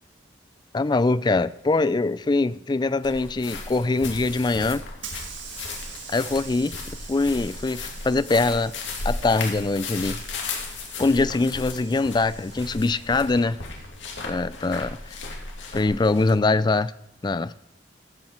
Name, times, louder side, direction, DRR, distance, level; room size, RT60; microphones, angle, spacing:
voice 1, 0.7-4.8 6.1-6.7 7.1-8.7 9.0-10.2 11.0-13.6 14.2-15.0 15.7-16.9 17.2-17.6, left 3 dB, 25° left, 16 dB, 0.4 m, -23 dB
sound 1, 3.0-16.3, left 3 dB, 90° left, 2.3 m, -36 dB
Hiss / Sliding door, 4.4-15.2, right 6 dB, 80° right, 1.7 m, -45 dB
15.0 x 7.7 x 4.4 m, 0.80 s
head